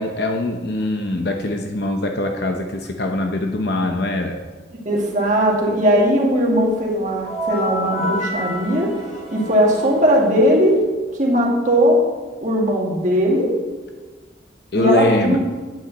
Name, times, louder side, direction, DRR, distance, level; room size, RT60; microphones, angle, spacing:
voice 1, 0.0-4.4 14.7-15.4, left 2 dB, 60° left, 4 dB, 0.8 m, -22 dB
voice 2, 4.7-9.0 9.3-10.9 11.2-12.1 12.4-13.6 14.7-15.4, equal, 40° right, -2 dB, 2.0 m, -18 dB
sound 1, 7.2-10.8, left 1 dB, 35° left, 2.5 m, -29 dB
9.1 x 5.5 x 7.9 m, 1.4 s
head